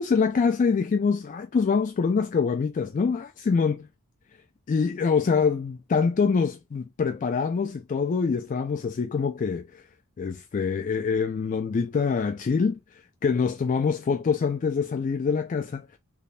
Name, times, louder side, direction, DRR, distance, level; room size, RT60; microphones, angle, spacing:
voice 1, 0.0-3.9 4.7-9.8 10.2-12.8 13.2-16.0, left 5 dB, 35° left, 0.3 m, -25 dB
3.2 x 2.3 x 4.1 m
head